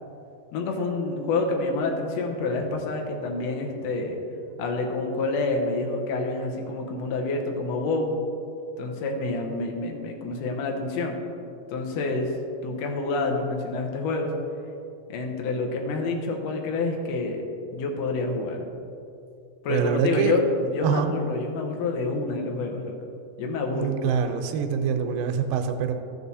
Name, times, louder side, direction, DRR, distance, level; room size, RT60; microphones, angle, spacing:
voice 1, 0.5-4.2 4.6-8.1 8.8-11.2 11.7-12.3 12.6-14.3 15.1-17.4 17.7-18.6 19.6-22.9 23.4-24.0, left 3 dB, 80° left, 2 dB, 1.5 m, -28 dB
voice 2, 19.7-20.4 20.8-21.1 23.7-25.9, right 7 dB, 90° right, 6 dB, 2.7 m, -25 dB
14.0 x 5.9 x 4.1 m, 2.6 s
omnidirectional pair, 4.4 m